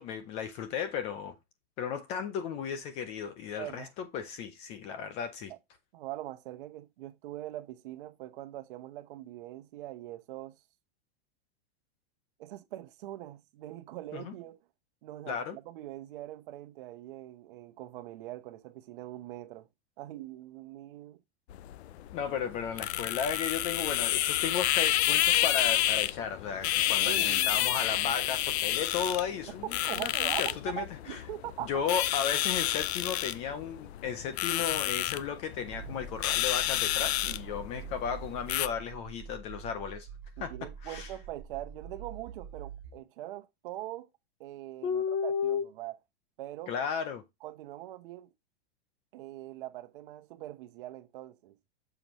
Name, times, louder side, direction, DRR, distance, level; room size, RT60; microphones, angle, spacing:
voice 1, 0.0-1.3 1.8-5.5 14.1-14.3 15.3-15.6 22.1-31.2 31.6-40.1 40.4-41.1 44.8-45.7 46.7-47.2, left 7 dB, 20° left, 0.4 m, -34 dB
voice 2, 3.6-3.9 5.9-10.6 12.4-14.6 15.0-19.7 20.0-21.2 27.0-27.5 29.6-31.7 40.5-44.1 44.4-46.0 46.4-46.7 47.4-48.3 49.1-51.6, right 14 dB, 55° right, 1.0 m, -42 dB
sound 1, 21.5-38.7, left 14 dB, 80° left, 0.6 m, -30 dB
sound 2, 35.6-43.0, right 7 dB, 35° right, 1.7 m, -46 dB
7.0 x 5.7 x 3.0 m
supercardioid pair, 165°, 32 cm